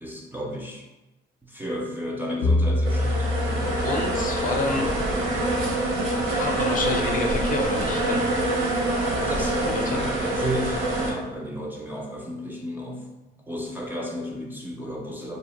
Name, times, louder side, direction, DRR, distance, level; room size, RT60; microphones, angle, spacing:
voice 1, 0.0-0.8 1.5-3.7 9.3-9.6 9.9-13.0 13.5-15.4, equal, 10° right, -1 dB, 0.3 m, -33 dB
sound 1, 2.4-5.2, left 2 dB, 85° left, 0.6 m, -26 dB
sound 2, 2.8-11.1, right 1 dB, 85° right, 0.6 m, -25 dB
voice 2, 3.8-4.9 6.4-8.2 9.6-10.0, left 3 dB, 45° left, 2 dB, 0.5 m, -28 dB
2.5 x 2.1 x 2.8 m, 1.1 s
cardioid pair, 90°, 20 cm